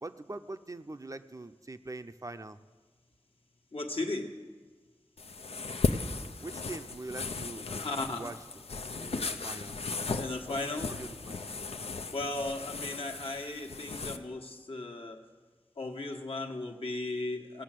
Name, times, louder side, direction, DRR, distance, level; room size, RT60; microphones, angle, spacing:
voice 1, 0.0-2.6 6.4-8.4 8.9-10.1 10.5-11.5, right 2 dB, 35° right, 10 dB, 0.5 m, -43 dB
voice 2, 3.7-4.3 7.7-8.4 10.2-11.0 12.1-15.2 15.8-17.6, left 2 dB, 70° left, 2 dB, 1.3 m, -36 dB
sound 1, 5.2-14.2, left 4 dB, 85° left, 0.5 m, -36 dB
17.0 x 6.5 x 7.6 m, 1.4 s
wide cardioid pair, 45°, 10 cm